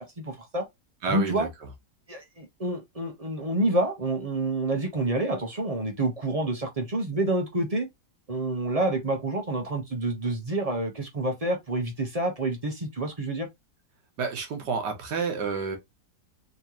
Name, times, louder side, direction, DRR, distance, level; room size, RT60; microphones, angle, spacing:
voice 1, 0.2-0.6 1.1-1.5 2.1-7.9 8.3-13.5, right 2 dB, 30° right, 0.7 m, -28 dB
voice 2, 1.0-1.7 14.2-15.8, right 5 dB, 70° right, 1.7 m, -30 dB
4.3 x 3.1 x 2.8 m
omnidirectional pair, 1.9 m